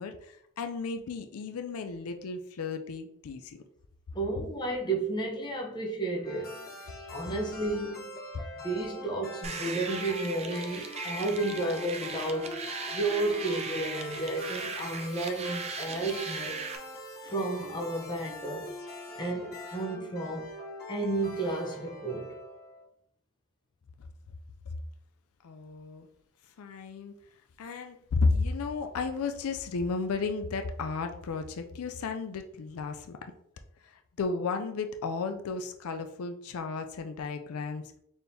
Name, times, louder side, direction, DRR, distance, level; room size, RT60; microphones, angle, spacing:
voice 1, 0.0-3.6 25.4-26.1 26.6-27.2 27.6-33.2 33.8-38.0, left 4 dB, 75° left, 0.4 m, -33 dB
voice 2, 4.1-6.6 7.1-8.1 8.5-16.8 17.2-18.7 19.2-20.5 20.9-22.3, right 2 dB, 20° left, 0.7 m, -32 dB
sound 1, 6.2-22.8, left 1 dB, 40° left, 1.0 m, -43 dB
sound 2, 9.4-16.8, right 4 dB, 30° right, 0.4 m, -38 dB
4.3 x 3.5 x 2.7 m
head